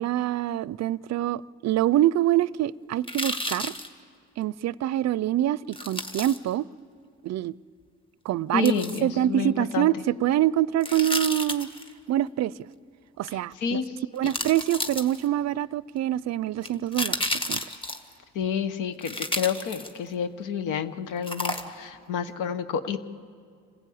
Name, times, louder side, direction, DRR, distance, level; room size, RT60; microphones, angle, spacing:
voice 1, 0.0-3.7 4.4-6.7 7.2-7.5 8.3-8.7 9.0-11.7 12.1-12.5 13.2-13.8 14.1-17.6, right 13 dB, 60° right, 0.5 m, -25 dB
sound 1, 3.0-3.9 5.7-6.4 8.7-9.0 10.8-11.9 13.5-13.6 14.2-15.4 16.6-18.1 19.0-20.1 21.2-21.9 22.3-22.4, left 1 dB, 15° left, 1.7 m, -31 dB
voice 2, 8.5-9.9 13.3-14.0 14.2-14.3 18.3-23.0, left 7 dB, 90° left, 1.1 m, -30 dB
27.0 x 15.5 x 8.5 m
cardioid pair, 90°, 30 cm